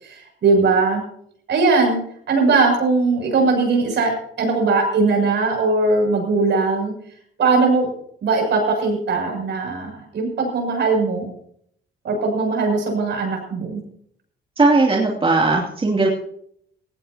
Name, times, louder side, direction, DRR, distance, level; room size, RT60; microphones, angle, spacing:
voice 1, 0.0-1.0 1.5-2.0 2.3-4.1 4.4-6.9 7.4-7.9 8.2-11.3 12.0-13.8, right 3 dB, 65° right, 1 dB, 7.2 m, -19 dB
voice 2, 14.6-16.1, right 3 dB, 25° right, -2 dB, 2.8 m, -17 dB
19.0 x 16.5 x 2.9 m, 0.67 s
cardioid pair, 90°, 20 cm